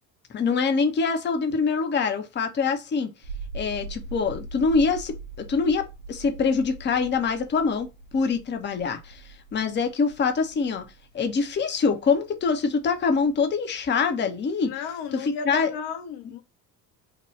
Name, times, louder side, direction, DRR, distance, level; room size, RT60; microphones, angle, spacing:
voice 1, 0.3-3.1 3.5-7.9 8.1-9.2 9.5-10.8 11.1-14.7 15.2-15.7, left 5 dB, 25° left, 0.6 m, -24 dB
sound 1, 3.2-13.3, right 3 dB, 80° right, 0.8 m, -41 dB
voice 2, 14.6-16.4, left 6 dB, 60° left, 0.7 m, -34 dB
2.9 x 2.2 x 3.1 m
hypercardioid pair, 55°, 47 cm